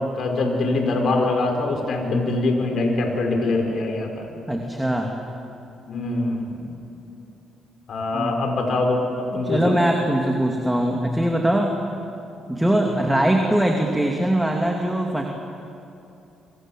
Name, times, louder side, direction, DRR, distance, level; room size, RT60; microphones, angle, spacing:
voice 1, 0.2-4.3 5.9-6.7 7.9-9.0 9.3-9.8, left 2 dB, 60° left, 2 dB, 5.8 m, -23 dB
voice 2, 4.5-5.1 8.1-8.6 9.3-11.8 12.5-15.2, right 1 dB, 5° right, 1 dB, 2.7 m, -22 dB
28.0 x 25.0 x 7.7 m, 2.8 s
cardioid pair, 90°, 0 cm